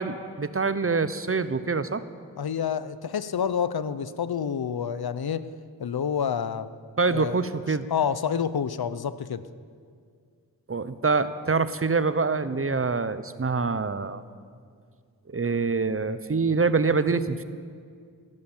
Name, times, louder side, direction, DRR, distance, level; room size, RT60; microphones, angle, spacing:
voice 1, 0.0-2.0 7.0-7.9 10.7-14.2 15.3-17.4, right 4 dB, 35° right, 13 dB, 0.8 m, -25 dB
voice 2, 2.4-5.5 5.8-6.7 7.1-7.4 7.9-9.4, left 7 dB, 75° left, 14 dB, 0.7 m, -28 dB
16.0 x 11.0 x 7.2 m, 2.1 s
cardioid pair, 45°, 38 cm